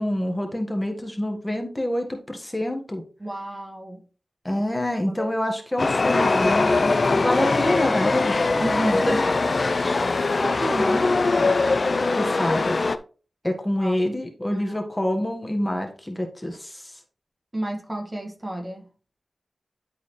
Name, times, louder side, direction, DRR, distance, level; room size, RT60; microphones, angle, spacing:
voice 1, 0.0-3.0 4.4-8.4 8.9-9.1 9.5-10.1 12.1-12.8 13.4-17.0, left 1 dB, 20° left, 1.6 m, -27 dB
voice 2, 3.2-4.1 5.1-5.3 8.6-9.3 10.4-11.6 13.8-14.0 14.5-14.8 17.5-18.9, right 1 dB, 30° right, 2.0 m, -31 dB
Chatter / Subway metro underground, 5.8-13.0, left 3 dB, 60° left, 0.6 m, -21 dB
11.5 x 4.1 x 3.2 m
cardioid pair, 45°, 0 cm